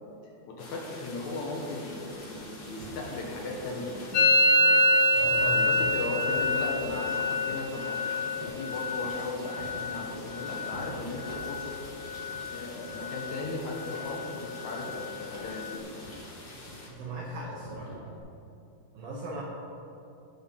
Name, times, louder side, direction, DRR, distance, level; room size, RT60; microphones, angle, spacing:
voice 1, 0.5-4.9 5.5-11.7 12.5-16.1, left 2 dB, 65° left, -1 dB, 1.9 m, -37 dB
sound 1, 0.6-16.9, left 2 dB, 50° left, 1.8 m, -46 dB
sound 2, 2.1-8.0 8.4-9.2 9.6-10.3 10.7-10.9 11.3-12.0 12.3-16.4 16.7-18.2, right 1 dB, 90° right, 4.7 m, -46 dB
Musical instrument, 4.1-11.8 12.0-12.6 12.9-13.5 13.7-15.8, left 1 dB, 85° left, 3.0 m, -27 dB
voice 2, 5.1-5.7 16.8-17.9 18.9-19.4, right 2 dB, 70° right, -5 dB, 2.6 m, -38 dB
17.0 x 6.3 x 3.8 m, 2.7 s
omnidirectional pair, 4.6 m